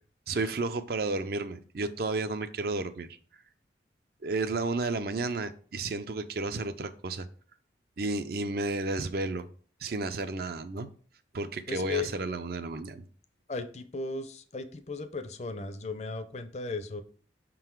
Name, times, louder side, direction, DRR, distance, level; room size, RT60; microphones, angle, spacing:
voice 1, 0.3-3.1 4.2-7.3 8.0-9.5 9.8-10.9 11.3-13.0, right 3 dB, 55° right, 11 dB, 0.5 m, -32 dB
voice 2, 11.7-12.1 13.5-17.0, left 3 dB, 35° left, 10 dB, 0.5 m, -36 dB
5.6 x 3.8 x 4.5 m, 0.43 s
head